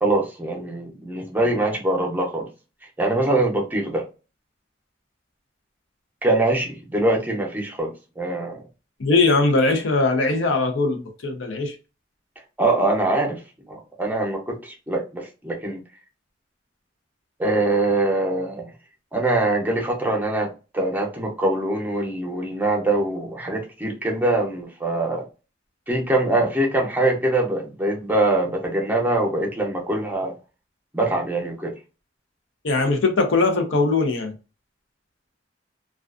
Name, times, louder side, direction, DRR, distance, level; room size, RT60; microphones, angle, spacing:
voice 1, 0.0-2.5 3.0-4.0 6.2-8.6 12.6-13.4 13.7-15.8 17.4-18.7 19.1-25.3 25.9-30.3 30.9-31.7, right 2 dB, 10° right, 0.6 m, -23 dB
voice 2, 9.0-11.8 32.6-34.3, left 3 dB, 85° left, 0.6 m, -20 dB
2.4 x 2.3 x 2.3 m
head